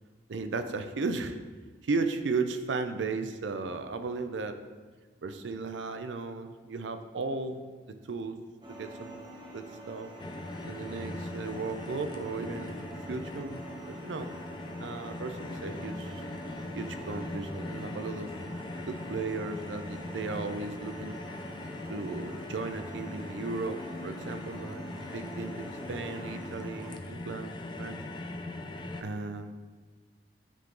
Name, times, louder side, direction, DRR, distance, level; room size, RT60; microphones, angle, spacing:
voice 1, 0.3-1.4 1.8-4.6 5.2-7.6 8.1-8.4 8.8-10.1 10.7-13.6 13.9-14.3 14.8-16.2 16.7-18.3 18.9-21.2 21.9-28.0 29.0-29.7, right 3 dB, 85° right, 8 dB, 0.5 m, -35 dB
sound 1, 8.6-26.9, right 1 dB, 25° right, 1.0 m, -46 dB
sound 2, 10.2-29.0, left 2 dB, 25° left, 0.4 m, -40 dB
8.4 x 3.7 x 3.9 m, 1.4 s
head